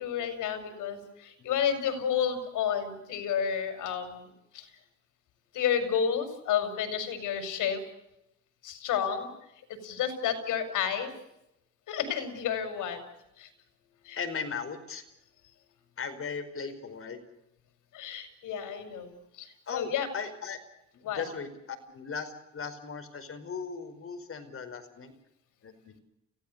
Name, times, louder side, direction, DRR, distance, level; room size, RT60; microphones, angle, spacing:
voice 1, 0.0-4.7 5.5-7.8 8.6-9.3 9.7-11.1 11.9-13.0 13.4-13.5 14.0-14.2 17.9-20.1 21.0-21.2, left 8 dB, 85° left, 8 dB, 5.6 m, -31 dB
voice 2, 14.1-15.0 16.0-17.2 19.7-20.6 20.9-25.1 25.6-26.0, left 5 dB, 45° left, 7 dB, 5.1 m, -38 dB
29.5 x 17.0 x 6.8 m, 0.85 s
cardioid pair, 90°, 30 cm